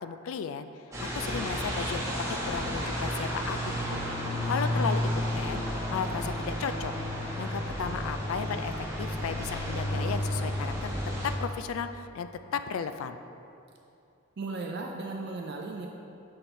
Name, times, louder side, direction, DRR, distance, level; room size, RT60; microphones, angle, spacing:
voice 1, 0.0-0.7 1.1-2.0 2.3-3.6 3.9-4.0 4.5-6.9 7.4-8.7 9.0-10.9 11.2-13.2, left 6 dB, 75° left, 10 dB, 0.3 m, -34 dB
sound 1, 0.9-11.3, equal, 15° right, 1.3 m, -31 dB
voice 2, 14.4-15.9, right 3 dB, 55° right, 1 dB, 0.5 m, -36 dB
6.6 x 4.2 x 4.4 m, 2.7 s
head